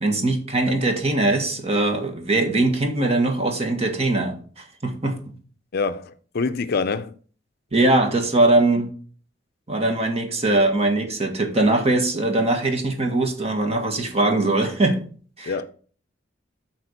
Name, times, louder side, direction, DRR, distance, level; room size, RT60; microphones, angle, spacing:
voice 1, 0.0-5.2 7.7-8.9 9.7-15.0 15.4-15.5, right 2 dB, 35° right, 1.6 m, -21 dB
voice 2, 5.7-7.1 15.4-15.7, left 4 dB, 55° left, 0.5 m, -26 dB
8.6 x 4.4 x 6.6 m
head